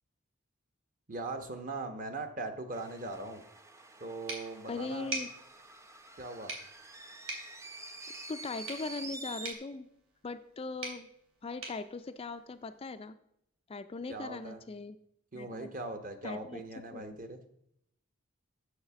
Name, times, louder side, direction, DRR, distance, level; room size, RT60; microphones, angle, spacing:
voice 1, 1.1-3.4 4.0-5.1 6.2-6.5 14.1-14.6 15.3-17.4, right 2 dB, 40° right, 7 dB, 1.1 m, -40 dB
sound 1, 2.7-9.5, right 2 dB, 15° right, 0.6 m, -48 dB
sound 2, 4.3-13.0, right 2 dB, 80° right, 2.9 m, -45 dB
voice 2, 4.7-5.3 8.3-9.9 10.2-11.1 11.4-13.2 13.7-15.0 15.3-15.7 16.2-16.6 16.9-17.0, left 3 dB, 30° left, 10 dB, 0.4 m, -40 dB
6.5 x 6.5 x 6.9 m, 0.75 s
head